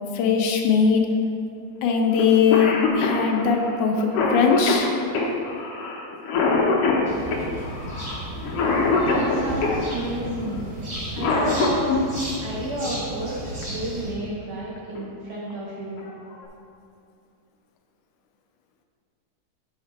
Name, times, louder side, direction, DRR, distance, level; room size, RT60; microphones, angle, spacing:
voice 1, 0.1-1.1 1.8-5.0, left 6 dB, 85° left, 3 dB, 2.3 m, -20 dB
Cough, 2.2-2.3 2.5-9.8 10.9-12.0 13.6-13.7 14.8-15.0 15.5-15.6 16.0-16.5, left 4 dB, 65° left, 1.7 m, -24 dB
sound 1, 7.0-14.1, right 1 dB, 15° right, 1.9 m, -34 dB
voice 2, 9.0-10.7 11.1-12.0 12.4-16.0, right 1 dB, 65° right, -5 dB, 1.4 m, -31 dB
11.0 x 5.0 x 4.2 m, 2.4 s
omnidirectional pair, 3.4 m